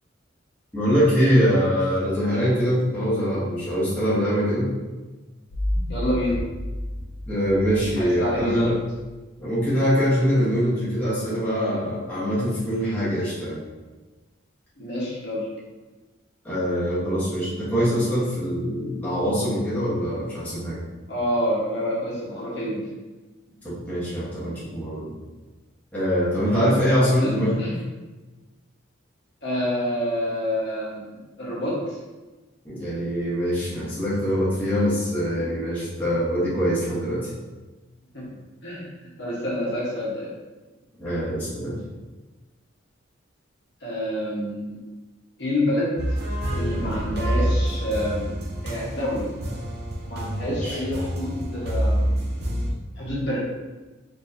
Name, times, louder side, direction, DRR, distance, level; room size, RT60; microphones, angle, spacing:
voice 1, 0.7-4.7 7.3-8.7 9.4-13.6 16.4-20.8 23.6-25.1 25.9-27.6 32.6-37.3 41.0-41.8 50.5-50.8, equal, 10° left, -11 dB, 1.1 m, -23 dB
sound 1, 5.5-9.0, left 1 dB, 85° left, 0.6 m, -31 dB
voice 2, 5.9-6.4 8.0-8.7 14.8-15.5 21.1-22.9 27.2-27.3 27.6-27.8 29.4-32.0 38.1-38.3 38.6-38.9 39.2-40.3 43.8-44.8 45.4-46.0 46.5-48.4 48.6-49.5 50.0-52.3 53.0-53.4, equal, 60° left, -6 dB, 1.2 m, -28 dB
sound 2, 46.0-52.7, equal, 50° right, 0.6 m, -27 dB
4.3 x 3.0 x 2.6 m, 1.2 s
head